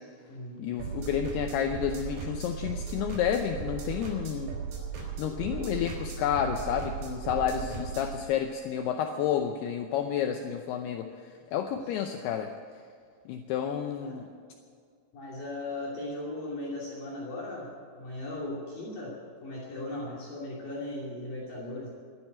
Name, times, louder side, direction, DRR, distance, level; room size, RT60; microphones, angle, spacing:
voice 1, 0.6-4.6 5.2-11.1 11.5-12.5 13.3-14.3, left 9 dB, 75° left, 5 dB, 2.6 m, -30 dB
sound 1, 0.8-8.2, right 6 dB, 70° right, 5.4 m, -37 dB
voice 2, 15.1-19.1 19.4-21.9, left 1 dB, 55° left, -6 dB, 4.1 m, -37 dB
13.0 x 10.5 x 9.7 m, 2.1 s
omnidirectional pair, 5.0 m